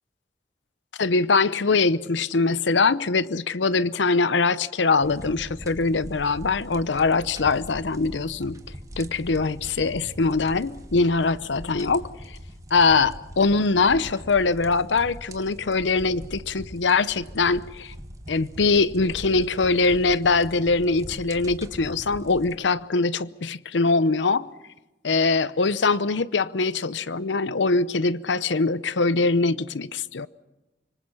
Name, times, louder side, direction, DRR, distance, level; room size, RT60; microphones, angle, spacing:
voice 1, 1.0-8.6 9.0-12.0 12.7-17.9 18.3-24.5 25.0-30.3, left 4 dB, 85° left, 0.8 m, -22 dB
sound 1, 5.0-22.6, equal, 20° right, 1.7 m, -41 dB
26.0 x 24.5 x 5.7 m
head